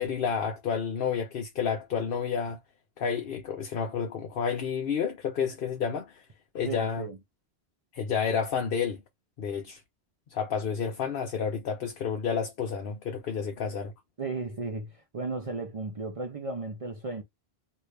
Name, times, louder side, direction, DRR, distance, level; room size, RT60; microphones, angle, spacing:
voice 1, 0.0-2.6 3.0-6.2 6.5-7.1 7.9-9.0 9.4-9.8 10.3-13.9, left 6 dB, 60° left, 0.9 m, -30 dB
voice 2, 6.6-7.2 14.2-17.2, right 3 dB, 40° right, 0.5 m, -35 dB
2.8 x 2.6 x 3.2 m
omnidirectional pair, 1.1 m